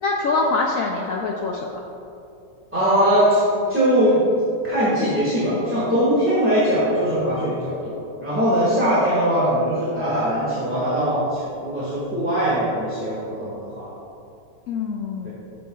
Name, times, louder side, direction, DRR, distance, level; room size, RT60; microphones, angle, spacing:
voice 1, 0.0-1.7 14.7-15.3, left 3 dB, 85° left, -1 dB, 0.7 m, -24 dB
voice 2, 2.7-4.2 4.6-13.9 15.2-15.3, equal, 5° right, -11 dB, 1.3 m, -21 dB
9.1 x 6.3 x 2.3 m, 2.6 s
omnidirectional pair, 2.0 m